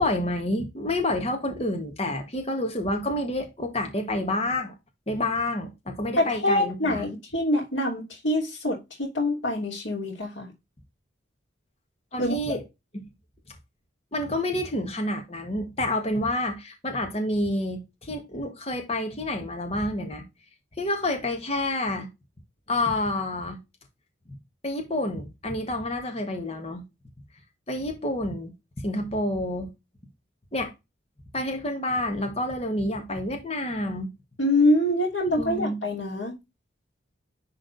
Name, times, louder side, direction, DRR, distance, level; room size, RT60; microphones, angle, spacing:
voice 1, 0.0-4.7 5.1-7.0 12.1-12.6 12.9-13.0 14.1-20.2 20.8-22.1 22.7-23.6 24.3-24.4 24.6-26.8 27.7-28.5 28.8-29.7 30.5-30.7 31.3-34.1 35.4-35.8, left 1 dB, 30° left, 1.7 m, -28 dB
voice 2, 6.2-10.5 12.2-12.6 34.4-36.4, left 1 dB, 90° left, 2.9 m, -25 dB
10.5 x 3.8 x 4.0 m
head